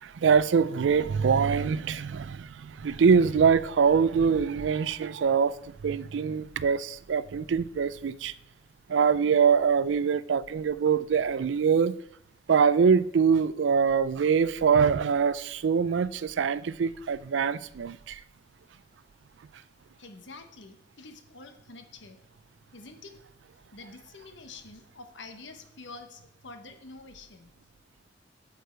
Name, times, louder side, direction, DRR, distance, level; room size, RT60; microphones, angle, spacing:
voice 1, 0.0-8.3 8.9-11.9 12.5-18.2, right 6 dB, 80° right, 0.4 m, -24 dB
voice 2, 20.0-22.2 22.7-23.1 23.5-27.5, left 3 dB, 85° left, 1.2 m, -47 dB
9.6 x 8.2 x 4.5 m
head